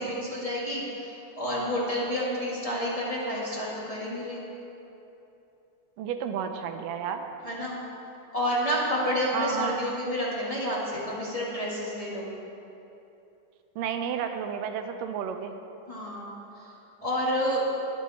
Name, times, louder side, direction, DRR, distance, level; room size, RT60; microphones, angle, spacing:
voice 1, 0.0-4.4 7.4-7.7 8.3-12.3 15.9-16.3 16.6-16.7 17.0-17.6, equal, 15° left, -6 dB, 1.3 m, -29 dB
voice 2, 6.0-7.3 9.3-9.9 13.8-15.6, right 7 dB, 80° right, 7 dB, 2.2 m, -31 dB
20.5 x 7.4 x 4.2 m, 2.9 s
omnidirectional pair, 3.9 m